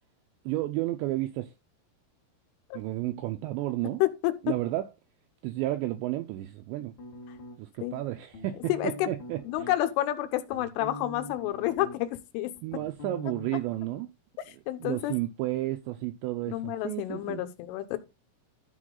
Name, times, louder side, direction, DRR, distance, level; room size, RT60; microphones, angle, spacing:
voice 1, 0.5-1.5 2.7-4.0 4.4-4.9 5.4-6.9 7.6-9.7 12.6-14.1 14.8-17.4, right 16 dB, 85° right, 2.6 m, -32 dB
voice 2, 4.0-4.3 7.8-8.0 8.7-9.1 9.5-12.5 14.7-15.1 16.5-18.0, left 14 dB, 80° left, 3.3 m, -29 dB
sound 1, 7.0-7.8 8.3-9.8 10.2-12.2 12.4-13.5, left 1 dB, 50° left, 1.4 m, -43 dB
12.5 x 4.9 x 3.8 m
omnidirectional pair, 5.8 m